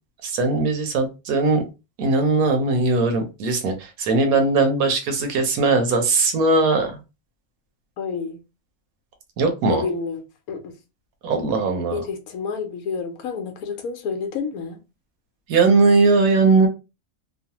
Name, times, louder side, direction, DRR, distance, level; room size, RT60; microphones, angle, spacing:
voice 1, 0.2-1.6 2.0-7.0 9.4-9.8 11.2-12.0 15.5-16.7, right 3 dB, 75° right, 1.1 m, -19 dB
voice 2, 8.0-8.4 9.7-10.7 11.9-14.8, left 5 dB, 75° left, 1.1 m, -29 dB
3.1 x 2.0 x 2.8 m
omnidirectional pair, 1.6 m